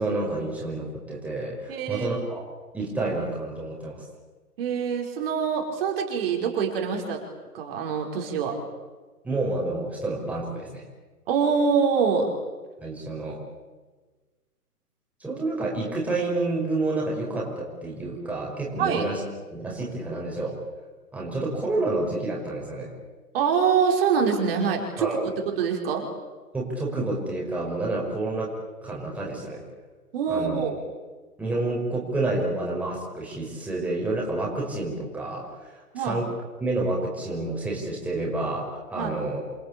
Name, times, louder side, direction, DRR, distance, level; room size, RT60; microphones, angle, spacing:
voice 1, 0.0-2.4 2.7-4.0 9.2-10.8 12.8-13.4 15.2-19.2 19.5-20.6 21.1-22.9 25.0-25.3 26.5-28.5 28.8-29.6 30.3-30.6 31.4-36.3 36.6-39.5, right 2 dB, 5° right, -3 dB, 5.6 m, -29 dB
voice 2, 1.7-2.1 4.6-7.2 7.5-8.6 11.3-12.3 18.8-19.0 23.3-25.1 25.6-26.1 30.1-30.8 35.9-36.2 38.9-39.1, right 6 dB, 40° right, 1 dB, 5.2 m, -24 dB
28.5 x 23.5 x 8.6 m, 1.3 s
figure-of-eight pair, 140°, 46 cm